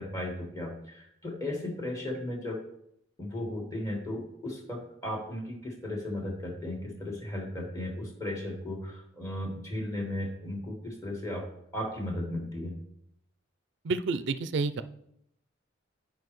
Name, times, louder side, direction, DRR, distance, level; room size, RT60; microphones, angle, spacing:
voice 1, 0.0-2.6 3.2-11.5 11.7-12.7, left 1 dB, 15° left, 0 dB, 1.5 m, -35 dB
voice 2, 13.8-14.8, right 3 dB, 60° right, 12 dB, 0.4 m, -29 dB
11.5 x 5.0 x 3.1 m, 0.74 s
head